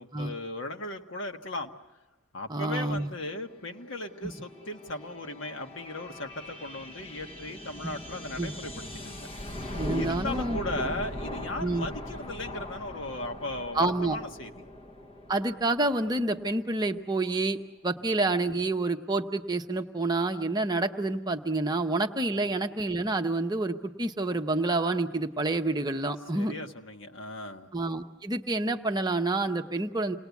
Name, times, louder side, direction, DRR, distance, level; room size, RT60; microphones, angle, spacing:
voice 1, 0.0-1.7 2.3-9.3 9.9-14.5 22.3-22.5 26.3-27.7, left 2 dB, 65° left, 4 dB, 1.5 m, -37 dB
voice 2, 2.5-3.1 4.2-4.3 7.8-7.9 8.4-8.5 9.8-10.6 11.6-11.9 13.7-14.2 15.3-17.6 17.8-26.5 27.7-30.2, right 2 dB, 20° right, 5 dB, 0.9 m, -28 dB
sound 1, 3.3-16.8, left 1 dB, 25° left, 1.0 m, -40 dB
28.0 x 19.5 x 8.3 m, 1.1 s
head